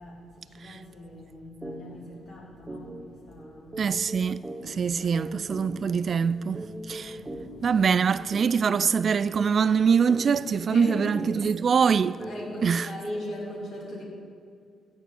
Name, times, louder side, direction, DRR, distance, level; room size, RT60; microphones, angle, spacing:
voice 1, 0.0-3.8 4.6-5.8 6.8-7.8 10.7-11.1 12.2-14.1, left 1 dB, 65° left, 3.2 m, -40 dB
sound 1, 1.6-1.8 2.1-2.3 2.7-12.9, right 1 dB, 20° right, 1.9 m, -41 dB
voice 2, 3.8-7.2 7.6-12.2 12.6-12.9, right 6 dB, 55° right, 0.3 m, -24 dB
14.5 x 4.9 x 8.3 m
hypercardioid pair, 45°, 0 cm